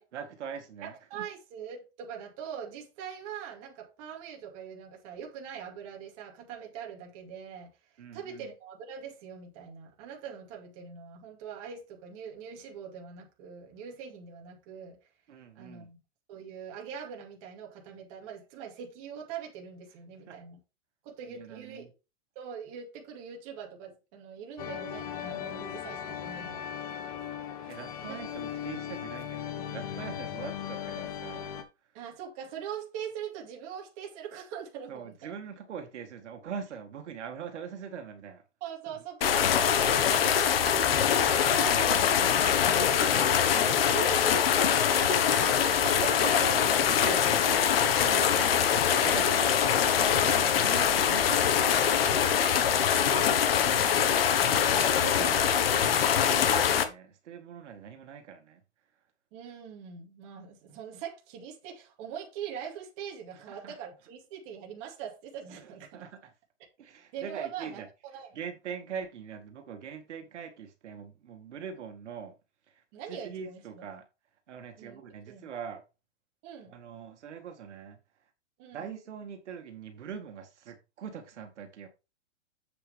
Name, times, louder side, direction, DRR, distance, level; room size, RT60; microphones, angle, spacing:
voice 1, 0.1-1.3 8.0-8.5 15.3-15.9 20.3-20.4 21.3-21.9 27.7-31.5 34.9-38.4 38.9-39.0 43.2-43.4 45.7-51.5 53.6-53.9 54.7-58.6 63.5-63.7 65.5-65.6 65.9-66.1 66.8-67.9 68.3-72.3 73.1-74.0 74.5-75.8 76.7-78.0 78.7-81.9, right 7 dB, 70° right, 2.0 m, -42 dB
voice 2, 0.8-7.7 8.1-15.0 15.5-16.0 16.3-20.6 21.0-21.8 22.4-26.7 27.6-27.8 28.1-28.2 31.9-35.3 38.6-40.9 41.5-42.6 42.9-46.2 52.0-54.2 54.6-55.3 59.3-66.0 67.1-68.4 72.9-73.8 74.8-75.5 76.4-76.8 78.6-78.9, right 8 dB, 30° right, 2.4 m, -42 dB
sound 1, 24.6-31.6, left 9 dB, 30° left, 1.4 m, -38 dB
sound 2, 39.2-56.8, left 8 dB, 55° left, 1.5 m, -24 dB
8.0 x 6.9 x 3.5 m
supercardioid pair, 175°, 36 cm